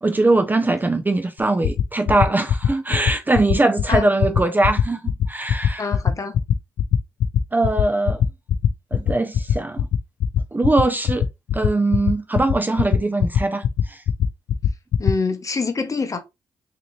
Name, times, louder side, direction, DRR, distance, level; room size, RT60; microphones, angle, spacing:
voice 1, 0.0-5.8 7.5-8.2 8.9-9.9 10.5-11.3 11.5-14.0, right 2 dB, 20° right, 0.5 m, -21 dB
sound 1, 1.4-15.1, left 10 dB, 65° left, 0.4 m, -19 dB
voice 2, 5.8-6.3 15.0-16.2, left 4 dB, 30° left, 0.8 m, -25 dB
3.8 x 2.8 x 3.0 m
cardioid pair, 85°, 10 cm